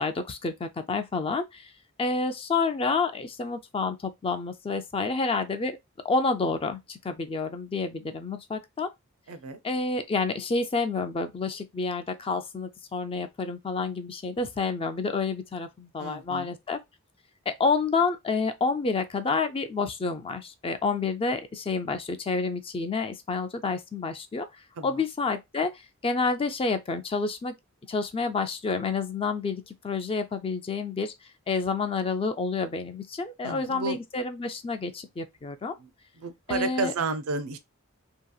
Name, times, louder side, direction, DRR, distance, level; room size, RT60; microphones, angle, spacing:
voice 1, 0.0-1.7 2.0-5.8 6.0-8.9 9.6-16.8 17.5-24.5 24.8-25.7 26.0-27.5 27.9-31.1 31.5-35.8 36.5-36.9, left 4 dB, 25° left, 0.4 m, -29 dB
voice 2, 9.3-9.6 16.0-16.5 24.8-25.0 33.4-34.0 35.8-35.9 36.2-37.6, right 3 dB, 75° right, 0.5 m, -32 dB
2.8 x 2.7 x 2.3 m
head